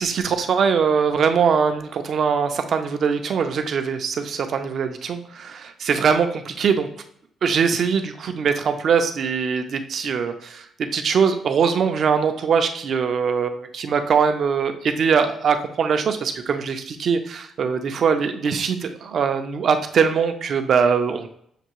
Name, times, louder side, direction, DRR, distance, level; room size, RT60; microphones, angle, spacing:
voice 1, 0.0-6.9 7.4-21.3, right 6 dB, 45° right, 7 dB, 0.5 m, -22 dB
6.6 x 2.7 x 3.0 m, 0.69 s
cardioid pair, 165°, 0 cm